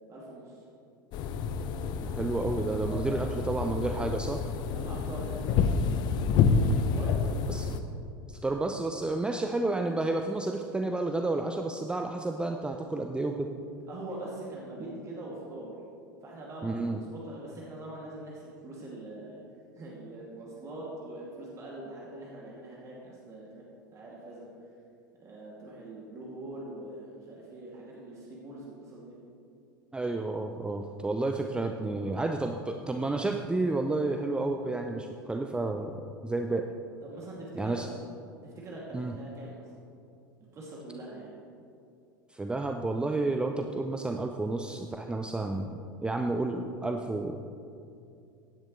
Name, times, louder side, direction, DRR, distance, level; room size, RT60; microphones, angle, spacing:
voice 1, 0.1-0.6 2.8-3.4 4.7-5.9 6.9-7.5 13.9-15.7 16.2-19.4 19.7-23.6 23.9-24.5 25.2-29.2 37.0-37.9 38.4-39.7 40.5-41.3, right 1 dB, 30° right, -5 dB, 2.6 m, -43 dB
sound 1, 1.1-7.8, left 5 dB, 40° left, 0.7 m, -28 dB
voice 2, 2.0-4.4 7.5-7.7 8.3-13.5 16.6-17.0 29.9-36.7 37.6-37.9 38.9-39.2 42.3-47.4, right 2 dB, 10° right, 4 dB, 0.6 m, -31 dB
16.0 x 10.5 x 3.2 m, 2.5 s
figure-of-eight pair, 80°, 11 cm